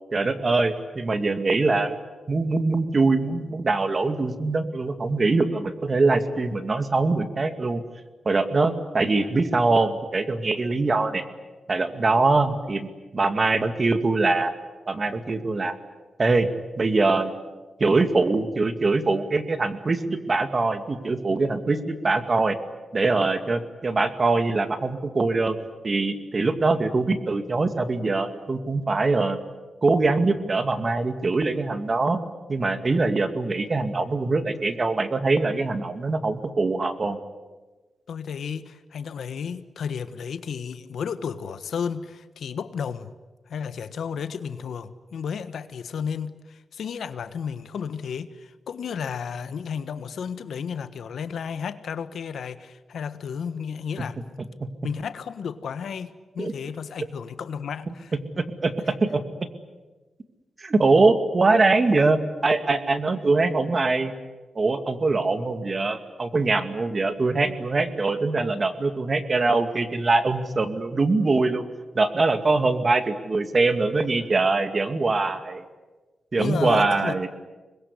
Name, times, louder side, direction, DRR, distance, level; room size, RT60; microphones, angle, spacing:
voice 1, 0.1-2.0 2.3-7.8 8.3-11.3 11.7-12.9 13.1-14.5 14.9-15.7 16.2-16.5 16.8-17.3 17.8-22.6 22.9-25.6 25.8-29.4 29.8-32.2 32.5-37.2 54.6-54.7 56.4-56.5 57.9-58.0 58.4-58.7 59.0-59.2 60.6-64.1 64.6-71.7 71.9-75.6 76.3-77.3, right 3 dB, 40° right, 9 dB, 2.3 m, -23 dB
voice 2, 38.1-43.1 43.5-54.2 54.8-58.1 76.4-77.2, left 7 dB, 75° left, 12 dB, 1.4 m, -33 dB
25.0 x 21.0 x 9.8 m, 1.2 s
cardioid pair, 75°, 0 cm